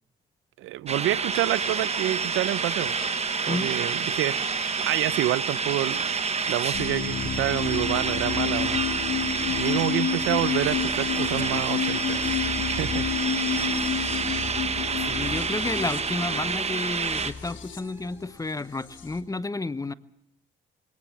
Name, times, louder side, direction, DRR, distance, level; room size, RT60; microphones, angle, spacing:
voice 1, 0.6-2.9 3.4-6.0 6.5-8.8 9.5-12.3 12.8-13.0, right 15 dB, 85° right, 0.7 m, -28 dB
sound 1, 0.9-17.3, right 5 dB, 30° right, 1.1 m, -29 dB
sound 2, 1.3-19.2, right 2 dB, 15° right, 1.8 m, -39 dB
sound 3, 6.7-19.2, left 7 dB, 75° left, 2.5 m, -31 dB
voice 2, 15.0-19.9, left 3 dB, 15° left, 0.8 m, -31 dB
21.5 x 18.0 x 7.3 m
cardioid pair, 90°, 20 cm